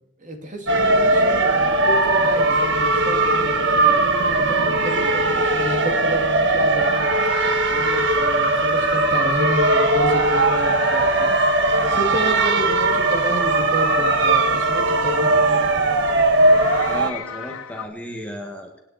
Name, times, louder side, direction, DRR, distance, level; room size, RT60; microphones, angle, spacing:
voice 1, 0.2-7.1 7.7-11.6 11.9-15.8, equal, 40° right, 4 dB, 2.3 m, -30 dB
sound 1, 0.7-17.1, right 2 dB, 55° right, 1.4 m, -19 dB
sound 2, 6.8-15.2 16.4-17.9, left 6 dB, 90° left, 0.9 m, -33 dB
voice 2, 16.8-18.8, equal, 5° left, 2 dB, 1.7 m, -33 dB
26.5 x 9.9 x 4.3 m, 0.91 s
head